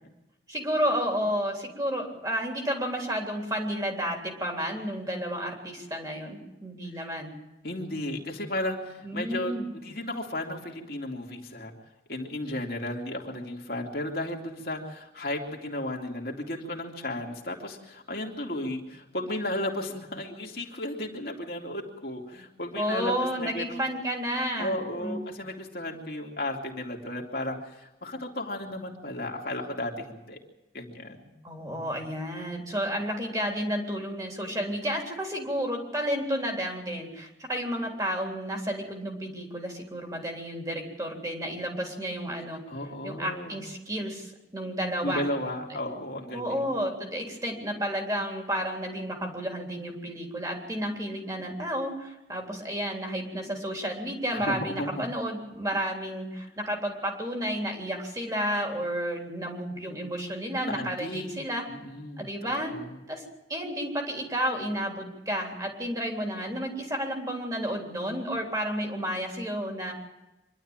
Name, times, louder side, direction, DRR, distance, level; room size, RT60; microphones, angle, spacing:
voice 1, 0.5-7.3 9.0-9.7 22.8-25.2 31.4-42.6 43.0-45.2 46.3-61.6 62.2-62.8 63.1-63.2 63.5-69.9, equal, 20° right, 1 dB, 3.5 m, -31 dB
voice 2, 7.6-11.7 12.1-23.8 24.6-30.4 30.7-31.3 42.7-43.6 45.0-46.7 54.3-55.0 60.7-61.3 61.7-62.3 62.7-62.9, left 1 dB, 55° left, 0 dB, 2.7 m, -34 dB
25.0 x 12.0 x 8.9 m, 0.99 s
head